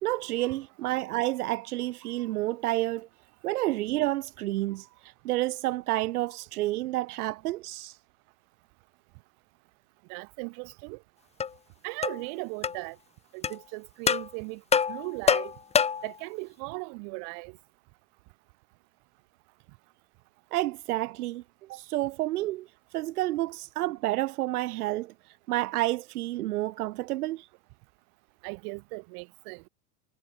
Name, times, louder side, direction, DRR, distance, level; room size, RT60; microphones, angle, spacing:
voice 1, 0.0-3.1 3.4-8.0 20.5-21.4 21.7-22.7 22.9-27.5, right 17 dB, 90° right, 0.9 m, -30 dB
voice 2, 10.1-11.0 11.8-13.0 13.3-14.6 14.9-15.5 16.0-17.6 28.4-29.6, right 40 dB or more, 55° right, 3.5 m, -38 dB
sound 1, 11.4-11.5 12.0-12.2 12.6-12.8 13.4-13.6 14.1-14.3 14.7-16.1, left 6 dB, 15° left, 0.9 m, -25 dB
supercardioid pair, 130°, 44 cm